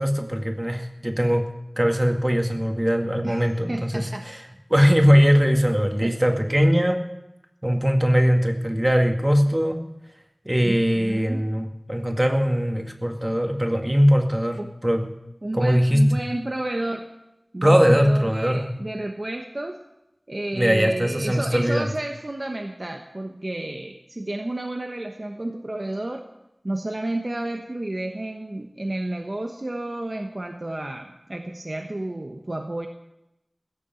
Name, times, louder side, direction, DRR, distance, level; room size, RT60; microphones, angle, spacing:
voice 1, 0.0-1.5 1.8-4.4 4.7-7.0 7.6-9.8 10.5-15.1 15.5-16.3 17.6-18.7 20.5-21.9, equal, 25° right, 3 dB, 2.0 m, -20 dB
voice 2, 3.2-4.3 6.0-6.2 10.6-11.4 14.6-14.7 15.4-17.1 17.5-19.8 20.3-26.2 26.6-32.9, right 1 dB, 55° right, 3 dB, 1.1 m, -31 dB
16.5 x 6.9 x 9.1 m, 0.89 s
wide cardioid pair, 50°, 0 cm